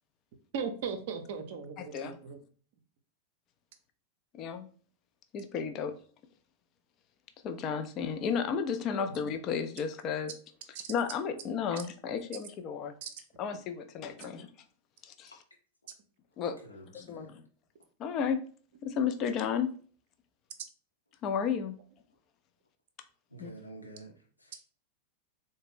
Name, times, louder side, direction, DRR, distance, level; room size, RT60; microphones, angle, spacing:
voice 1, 0.5-2.4 10.7-10.8 11.7-11.8 13.0-13.1, right 6 dB, 50° right, 0.5 m, -37 dB
voice 2, 1.8-2.2 4.3-4.7 5.3-6.0 7.4-10.3 10.9-12.9 13.4-14.5 15.0-15.3 16.4-16.6 16.9-17.4 18.0-18.4 18.8-19.7 21.2-21.8 23.4-23.5, left 7 dB, 35° left, 0.4 m, -33 dB
voice 3, 16.6-17.3 23.3-24.6, right 1 dB, 80° left, 0.8 m, -49 dB
3.9 x 2.1 x 3.3 m
figure-of-eight pair, 90°, 0 cm